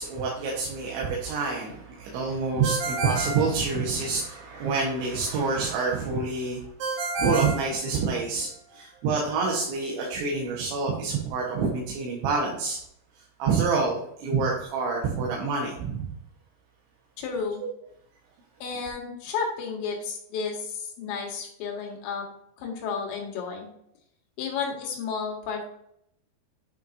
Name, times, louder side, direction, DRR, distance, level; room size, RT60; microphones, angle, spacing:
voice 1, 0.0-6.6 7.2-12.8 13.4-16.1 17.6-17.7, right 4 dB, 80° right, -2 dB, 3.6 m, -27 dB
Ringtone, 2.6-4.3 6.8-8.5, right 3 dB, 65° right, 2.5 m, -31 dB
voice 2, 17.2-17.6 18.6-22.3 22.6-23.7 24.4-25.7, left 5 dB, 75° left, 0 dB, 3.9 m, -32 dB
10.0 x 5.7 x 2.7 m, 0.73 s
omnidirectional pair, 5.2 m